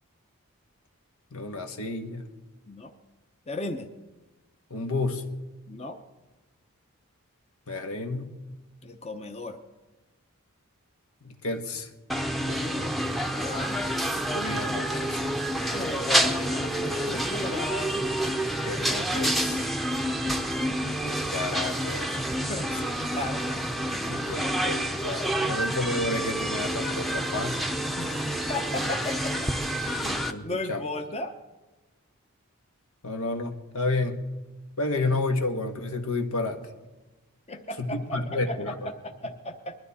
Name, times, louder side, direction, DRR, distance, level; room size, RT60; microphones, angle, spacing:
voice 1, 1.3-2.3 4.7-5.2 7.7-8.4 11.2-11.9 12.4-13.0 14.3-15.2 17.1-17.2 17.5-17.6 18.6-19.7 21.0-22.2 24.1-27.7 30.0-30.8 33.0-34.2 34.8-36.6 37.9-38.9, left 2 dB, 80° left, 5 dB, 1.5 m, -31 dB
voice 2, 3.5-3.9 5.7-6.0 8.8-9.6 13.3-13.8 15.5-18.1 20.2-20.8 22.5-23.4 28.0-29.5 29.8-31.3 37.5-39.8, left 2 dB, 30° left, 6 dB, 0.8 m, -36 dB
sound 1, 12.1-30.3, right 1 dB, ahead, 0.7 m, -28 dB
21.5 x 12.5 x 4.3 m, 1.1 s
head